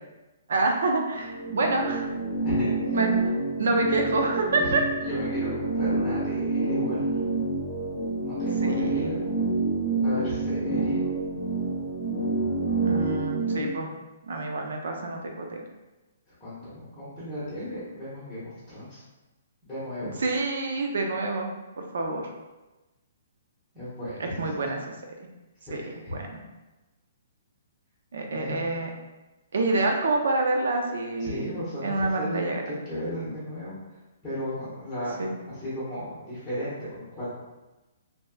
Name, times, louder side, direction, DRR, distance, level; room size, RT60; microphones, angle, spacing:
voice 1, 0.5-2.1 2.9-3.1 3.6-4.8 8.6-9.1 12.8-13.9 14.2-15.6 20.2-21.5 21.8-22.2 24.2-24.8 25.7-26.4 28.1-28.9 29.5-31.5 31.8-32.6 35.2-35.3, right 2 dB, 75° right, 2 dB, 0.5 m, -27 dB
sound 1, 1.1-13.6, right 3 dB, 60° left, 0.7 m, -27 dB
voice 2, 2.4-3.0 4.6-4.7 5.0-7.0 8.2-9.3 10.0-11.0 16.4-19.0 19.6-20.2 23.7-24.7 25.6-26.1 28.4-28.5 31.2-33.8 34.2-35.2 35.5-37.3, equal, 5° left, -12 dB, 1.2 m, -35 dB
3.2 x 2.8 x 2.2 m, 1.1 s
hypercardioid pair, 160°, 0 cm